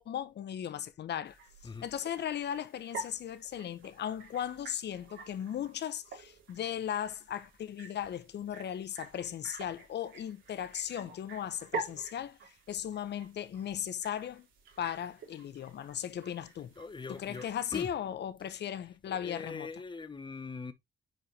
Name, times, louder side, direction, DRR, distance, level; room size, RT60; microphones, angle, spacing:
voice 1, 0.0-1.4 1.6-12.4 12.7-14.5 14.8-16.7 17.1-19.7, left 9 dB, 60° left, 0.9 m, -37 dB
sound 1, 1.3-17.9, right 3 dB, 80° right, 3.4 m, -48 dB
voice 2, 16.8-17.9 19.1-20.7, left 4 dB, 25° left, 1.1 m, -42 dB
7.8 x 5.0 x 3.3 m
cardioid pair, 90°, 20 cm